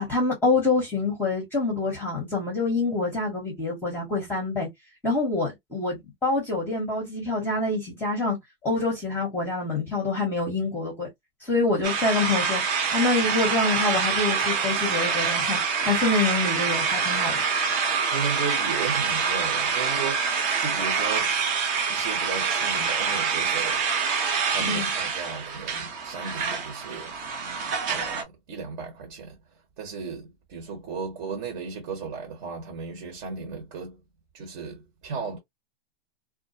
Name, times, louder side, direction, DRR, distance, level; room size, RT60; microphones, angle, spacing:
voice 1, 0.0-4.7 5.0-6.0 6.2-8.4 8.6-11.1 11.4-12.6 12.9-17.4 24.6-24.9, left 3 dB, 5° left, 0.8 m, -26 dB
sound 1, 11.8-28.2, right 5 dB, 25° right, 0.5 m, -26 dB
voice 2, 18.1-21.3 21.9-23.8 24.5-27.1 27.9-29.3 29.8-34.0 34.3-35.4, right 5 dB, 45° right, 1.0 m, -35 dB
2.4 x 2.1 x 2.6 m
hypercardioid pair, 140°, 31 cm